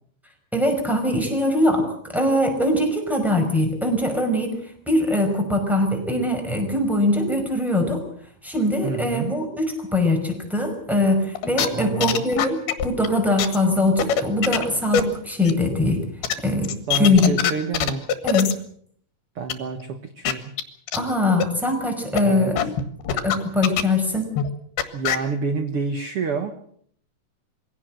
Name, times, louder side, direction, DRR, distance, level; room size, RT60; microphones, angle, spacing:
voice 1, 0.5-8.0 8.4-16.0 16.4-17.4 18.2-18.5 20.9-22.6 23.1-24.3, left 1 dB, ahead, 4 dB, 5.0 m, -22 dB
voice 2, 8.8-9.3 11.7-12.2 16.9-18.0 19.3-20.5 22.2-22.5 24.9-26.7, right 5 dB, 75° right, 8 dB, 1.3 m, -28 dB
Video codec audio glitches, 11.3-11.7 12.0-13.1 13.4-13.6 13.9-14.6 14.9-15.0 15.5-15.6 16.2-16.3 16.6-18.5 19.5-19.6 19.8-19.9 20.2-20.3 20.6-20.7 20.9-21.0 21.4-21.5 22.2-22.3 22.6-23.4 23.6-24.0 24.4-24.5 24.8-25.2, left 8 dB, 80° left, 3.5 m, -22 dB
23.0 x 17.0 x 7.6 m, 0.63 s
omnidirectional pair, 4.4 m